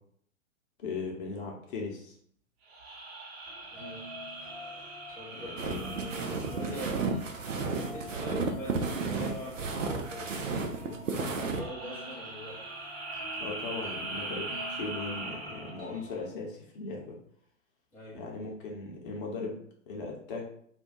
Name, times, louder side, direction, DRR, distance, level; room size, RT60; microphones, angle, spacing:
voice 1, 0.8-2.1 5.3-5.9 13.4-17.2 18.1-19.6 19.9-20.5, left 3 dB, 40° left, 0 dB, 0.8 m, -38 dB
sound 1, 2.6-7.4 11.2-16.0, right 2 dB, 50° right, 0.9 m, -41 dB
sound 2, 3.4-16.3, left 1 dB, 25° right, 1.4 m, -47 dB
voice 2, 3.7-4.0 5.2-7.0 7.6-12.6 17.9-18.2, left 1 dB, 5° left, -7 dB, 0.6 m, -43 dB
sound 3, 5.6-11.6, right 4 dB, 70° right, 0.6 m, -33 dB
2.5 x 2.3 x 3.9 m, 0.63 s
figure-of-eight pair, 105°, 39 cm